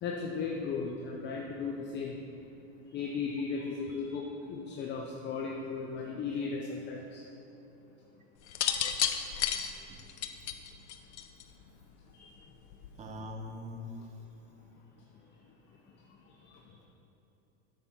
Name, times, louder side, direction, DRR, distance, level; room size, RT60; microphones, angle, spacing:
voice 1, 0.0-2.2 2.9-7.2 12.1-12.4 13.0-13.1 16.1-16.9, left 5 dB, 35° left, 0 dB, 0.9 m, -36 dB
sound 1, 8.5-11.6 12.7-13.1, left 9 dB, 80° left, 0.7 m, -32 dB
voice 2, 13.0-13.9, left 1 dB, 20° right, 2 dB, 1.1 m, -42 dB
9.2 x 7.2 x 4.5 m, 2.9 s
hypercardioid pair, 110°, 33 cm